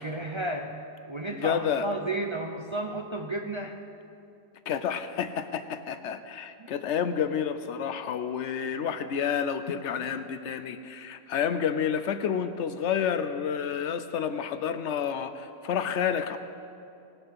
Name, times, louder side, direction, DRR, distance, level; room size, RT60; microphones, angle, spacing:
voice 1, 0.0-3.8 6.6-6.7, right 2 dB, 35° right, 2 dB, 0.5 m, -33 dB
voice 2, 1.3-1.9 4.7-16.4, left 8 dB, 70° left, 10 dB, 0.9 m, -29 dB
19.0 x 7.1 x 5.5 m, 2.6 s
omnidirectional pair, 1.3 m